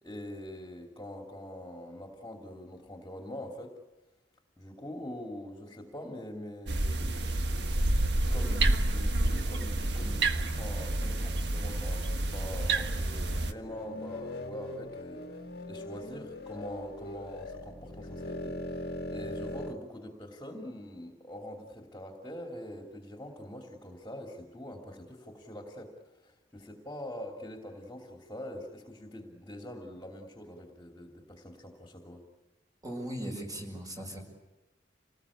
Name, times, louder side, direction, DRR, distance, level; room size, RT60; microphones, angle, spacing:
voice 1, 0.0-3.8 4.6-25.9 26.2-32.2, left 1 dB, 15° left, 2 dB, 2.8 m, -44 dB
sound 1, 6.7-13.5, right 2 dB, 65° right, 1.5 m, -29 dB
sound 2, 13.6-19.8, left 1 dB, 55° left, 1.7 m, -40 dB
voice 2, 32.8-34.2, right 1 dB, 20° right, 2 dB, 6.3 m, -38 dB
28.0 x 19.5 x 8.6 m, 1.1 s
head